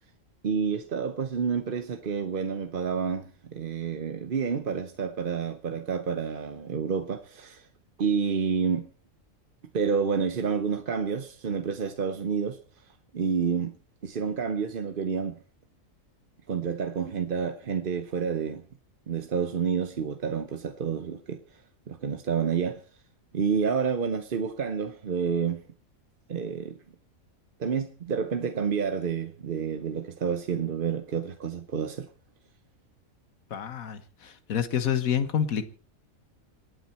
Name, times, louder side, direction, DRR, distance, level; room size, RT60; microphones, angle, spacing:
voice 1, 0.4-7.7 8.0-8.9 9.7-12.6 13.1-13.8 14.0-15.4 16.5-18.6 19.1-21.6 21.9-22.8 23.3-25.6 26.3-26.8 27.6-32.1, right 6 dB, 45° right, 0.9 m, -29 dB
voice 2, 33.5-35.7, left 8 dB, 85° left, 1.6 m, -28 dB
26.5 x 9.1 x 4.3 m
omnidirectional pair, 1.4 m